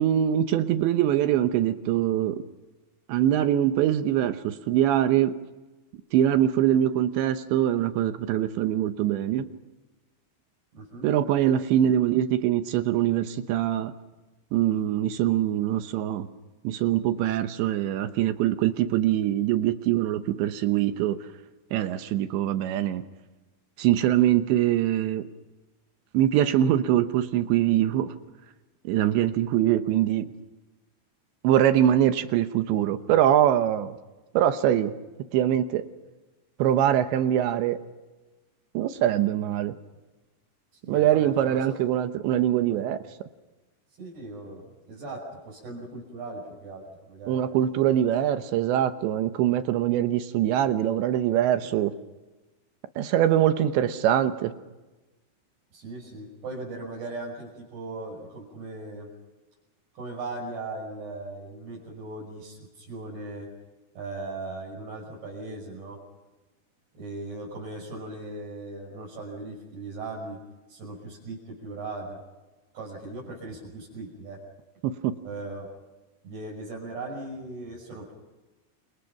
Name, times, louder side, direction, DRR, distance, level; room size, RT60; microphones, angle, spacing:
voice 1, 0.0-2.4 3.1-5.3 6.1-9.5 11.0-13.9 14.5-16.3 16.6-21.2 21.7-23.0 23.8-25.3 26.1-28.1 28.8-30.3 31.4-34.0 34.3-34.9 35.3-35.9 36.6-37.8 38.7-39.8 40.9-43.0 47.3-51.9 53.0-54.5 74.8-75.2, right 11 dB, 75° right, 9 dB, 3.0 m, -23 dB
voice 2, 10.7-11.1 40.8-41.8 44.0-47.4 55.7-59.1 60.0-63.5 64.0-66.0 66.9-70.4 70.7-72.2 72.7-74.4 75.2-75.7 76.2-78.1, right 2 dB, 55° right, -4 dB, 8.0 m, -38 dB
29.0 x 27.5 x 5.9 m, 1.1 s
omnidirectional pair, 5.8 m